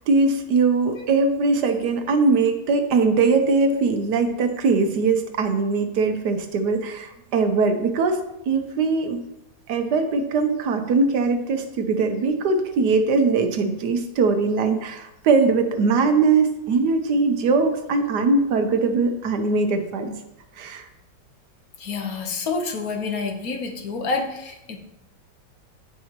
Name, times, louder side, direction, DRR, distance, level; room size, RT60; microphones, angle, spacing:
voice 1, 0.0-8.2 8.5-9.2 9.7-20.2 20.6-20.9, right 4 dB, 70° right, 7 dB, 1.3 m, -21 dB
voice 2, 21.8-24.8, left 4 dB, 60° left, 4 dB, 1.3 m, -28 dB
14.0 x 4.7 x 2.9 m, 0.89 s
omnidirectional pair, 1.9 m